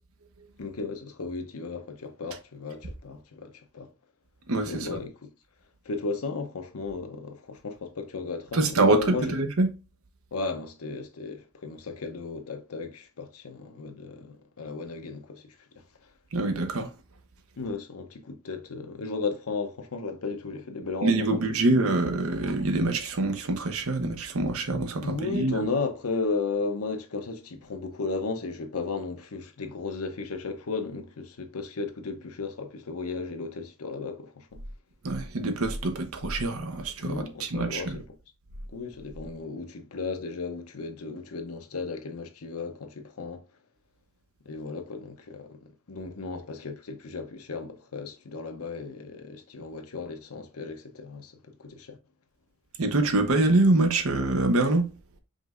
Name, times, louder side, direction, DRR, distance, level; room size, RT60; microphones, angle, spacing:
voice 1, 0.6-3.9 4.7-5.3 5.8-9.3 10.3-16.1 17.6-21.7 25.0-34.6 37.0-38.0 38.7-43.4 44.4-52.0, left 4 dB, 85° left, 0.7 m, -35 dB
voice 2, 4.5-5.0 8.5-9.7 16.3-16.9 21.0-25.6 35.0-38.0 52.8-54.9, right 2 dB, 75° right, 0.7 m, -25 dB
5.2 x 3.1 x 2.4 m
head